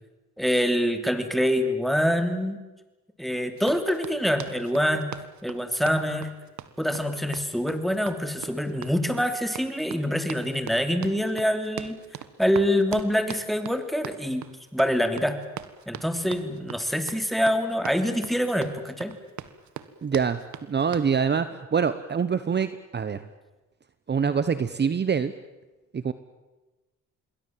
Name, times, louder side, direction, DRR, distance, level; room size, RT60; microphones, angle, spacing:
voice 1, 0.4-2.6 3.2-5.1 5.4-6.3 6.8-12.0 12.4-14.5 14.7-15.4 15.9-19.1, equal, ahead, 8 dB, 3.0 m, -25 dB
Run, 3.6-21.1, right 10 dB, 70° right, 1.6 m, -42 dB
voice 2, 20.0-20.4 20.7-23.2 24.1-25.3 25.9-26.1, right 6 dB, 35° right, 13 dB, 1.1 m, -25 dB
27.5 x 21.0 x 7.6 m, 1.1 s
cardioid pair, 90°, 30 cm